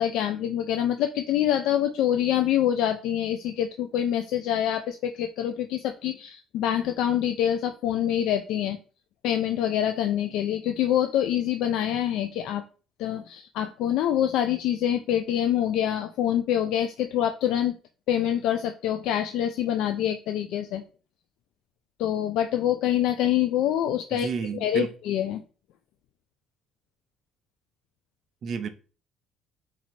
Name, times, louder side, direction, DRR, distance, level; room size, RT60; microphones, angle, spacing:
voice 1, 0.0-8.8 9.2-12.6 13.0-17.8 18.1-20.8 22.0-24.3 24.6-25.4, left 10 dB, 80° left, 0.3 m, -25 dB
voice 2, 24.1-24.9 28.4-28.7, right 6 dB, 50° right, 0.6 m, -31 dB
3.9 x 2.8 x 4.3 m
cardioid pair, 130°, 0 cm